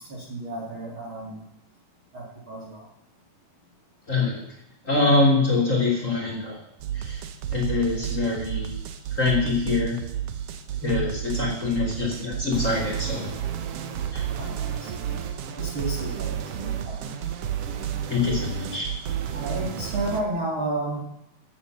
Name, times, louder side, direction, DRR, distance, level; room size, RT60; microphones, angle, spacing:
voice 1, 0.1-1.4 2.1-2.8 10.8-11.1 14.3-15.2 15.6-17.1 19.3-21.0, right 1 dB, 40° right, -2 dB, 2.5 m, -32 dB
voice 2, 4.1-4.4 4.8-6.6 6.9-7.2 7.5-8.7 9.2-10.0 10.8-13.3 14.1-14.2 18.1-18.9, left 3 dB, 20° left, -1 dB, 3.1 m, -24 dB
sound 1, 6.8-20.2, right 9 dB, 80° right, 1.3 m, -31 dB
15.0 x 8.1 x 6.8 m, 0.83 s
omnidirectional pair, 4.2 m